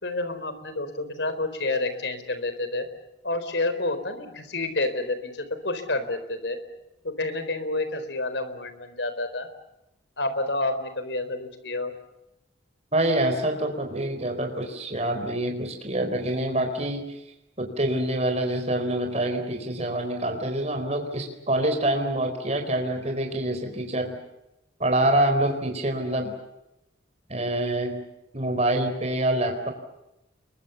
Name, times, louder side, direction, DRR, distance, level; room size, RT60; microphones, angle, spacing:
voice 1, 0.0-2.9 3.2-6.6 7.0-9.5 10.2-11.9, left 2 dB, 65° left, 11 dB, 4.2 m, -29 dB
voice 2, 12.9-17.0 17.6-24.2 24.8-26.3 27.3-28.0 28.3-29.7, right 1 dB, 35° right, 4 dB, 4.4 m, -26 dB
29.5 x 23.0 x 7.1 m, 0.89 s
head